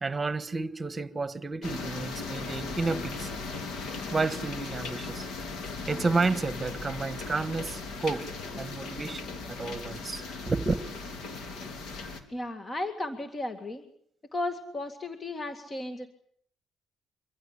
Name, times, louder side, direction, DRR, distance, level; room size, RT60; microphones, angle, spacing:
voice 1, 0.0-3.3 4.1-5.3 5.9-8.2 8.6-10.8, right 3 dB, 25° right, 1.5 m, -31 dB
sound 1, 1.6-12.2, left 4 dB, 80° left, 3.4 m, -37 dB
voice 2, 12.3-13.8 14.3-16.1, left 2 dB, 30° left, 2.1 m, -34 dB
24.5 x 15.5 x 9.9 m
cardioid pair, 90°, 0 cm